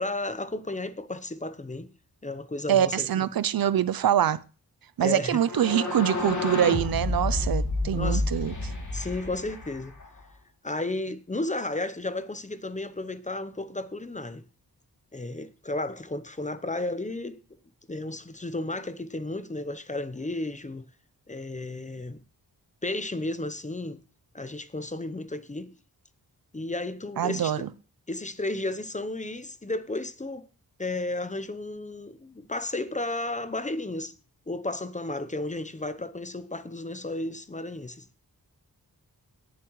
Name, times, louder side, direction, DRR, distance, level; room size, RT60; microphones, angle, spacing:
voice 1, 0.0-1.9 2.2-3.3 5.0-5.4 7.9-8.3 8.9-9.9 10.6-14.4 15.1-17.4 17.9-20.8 21.3-22.2 22.8-24.0 24.3-25.7 26.5-27.7 28.1-30.5 30.8-34.1 34.5-38.1, left 2 dB, 20° left, 0.7 m, -33 dB
voice 2, 2.7-4.4 5.0-8.5 27.2-27.7, right 10 dB, 65° right, 0.5 m, -24 dB
sound 1, 5.4-10.2, left 2 dB, 50° left, 2.7 m, -30 dB
18.0 x 7.3 x 3.1 m
wide cardioid pair, 105°, 39 cm